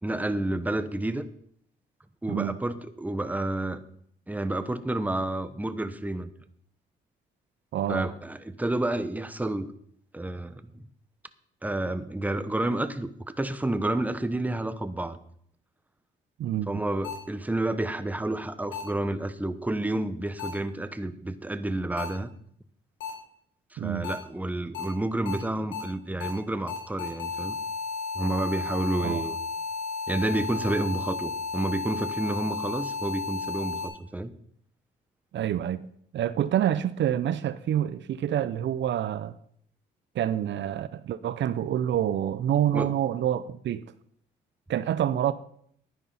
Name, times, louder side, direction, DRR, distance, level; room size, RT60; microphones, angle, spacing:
voice 1, 0.0-1.3 2.2-3.8 4.3-6.3 7.9-9.7 10.1-10.8 11.6-13.1 13.4-15.2 16.7-22.3 23.7-27.6 28.1-29.4 30.1-34.3 42.7-42.9, right 1 dB, 10° right, 1.1 m, -30 dB
voice 2, 7.7-8.1 16.4-16.8 23.8-24.1 29.0-29.2 35.3-35.8 36.1-39.4 40.1-43.8 44.7-45.3, right 11 dB, 65° right, 0.6 m, -27 dB
sound 1, 17.0-17.1 18.7-18.8 20.4-20.5 22.0-22.1 23.0-23.1 24.0-24.1 24.7-24.8 25.3-25.4 25.7-25.8 26.2-26.3 26.7-33.9, left 4 dB, 80° left, 4.1 m, -33 dB
11.5 x 9.8 x 5.7 m
cardioid pair, 90°, 20 cm